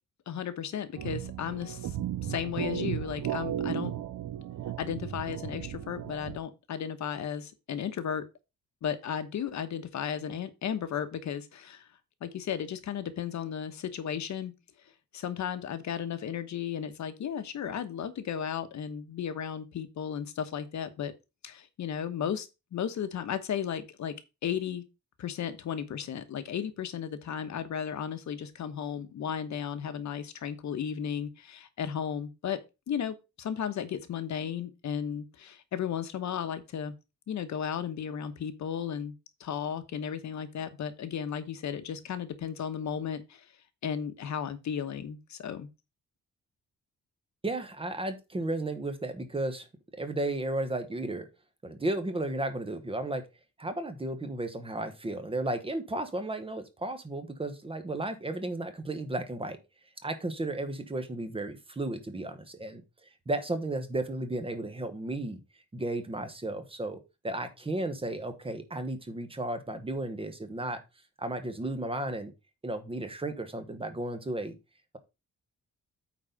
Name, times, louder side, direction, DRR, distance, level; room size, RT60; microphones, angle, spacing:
voice 1, 0.3-3.9 4.8-8.2 8.8-11.9 12.2-14.5 15.1-21.1 21.4-24.1 24.4-24.8 25.2-32.6 32.9-36.9 37.3-39.1 39.4-43.4 43.8-45.7, left 8 dB, 70° left, 1.1 m, -34 dB
sound 1, 1.0-6.4, right 11 dB, 90° right, 0.8 m, -35 dB
voice 2, 47.4-49.7 50.0-51.3 51.6-53.2 53.6-59.6 60.0-62.8 63.3-65.4 65.7-70.8 71.2-72.3 72.6-74.5, right 2 dB, 20° right, 1.1 m, -34 dB
8.6 x 4.0 x 5.3 m
wide cardioid pair, 165°, 30 cm